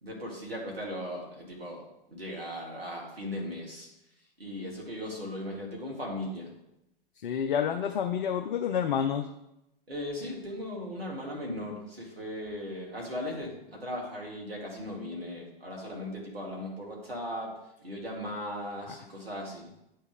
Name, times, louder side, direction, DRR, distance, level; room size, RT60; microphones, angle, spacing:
voice 1, 0.0-1.8 2.1-3.9 4.4-6.5 9.9-17.5 17.8-19.7, left 1 dB, 80° right, -2 dB, 2.2 m, -37 dB
voice 2, 7.2-9.3 18.9-19.0, left 8 dB, 55° left, 5 dB, 0.6 m, -29 dB
9.1 x 4.4 x 3.6 m, 0.85 s
figure-of-eight pair, 105°, 30 cm